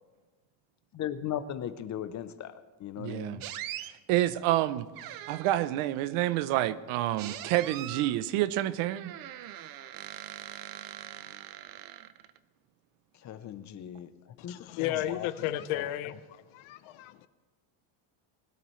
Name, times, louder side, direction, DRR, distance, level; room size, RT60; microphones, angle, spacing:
voice 1, 0.9-3.4 13.2-14.1 14.4-15.3 15.7-15.9, left 10 dB, 35° left, 0.7 m, -38 dB
voice 2, 3.0-3.4 4.1-4.9 5.3-9.1, right 14 dB, 80° right, 0.8 m, -28 dB
sound 1, 3.4-3.9 5.0-5.7 7.2-8.2 8.9-12.4, right 12 dB, 45° right, 0.5 m, -42 dB
voice 3, 14.4-16.2 16.5-17.3, left 13 dB, 70° left, 0.8 m, -33 dB
20.5 x 12.5 x 3.2 m
cardioid pair, 150°, 50 cm